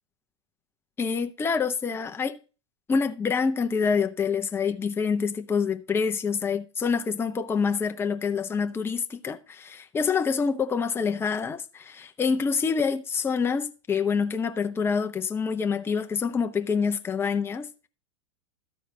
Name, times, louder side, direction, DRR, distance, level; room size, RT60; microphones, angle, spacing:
voice 1, 1.0-2.4 2.9-17.9, left 5 dB, 15° left, 0.7 m, -26 dB
12.5 x 4.6 x 6.4 m
supercardioid pair, 125°, 16 cm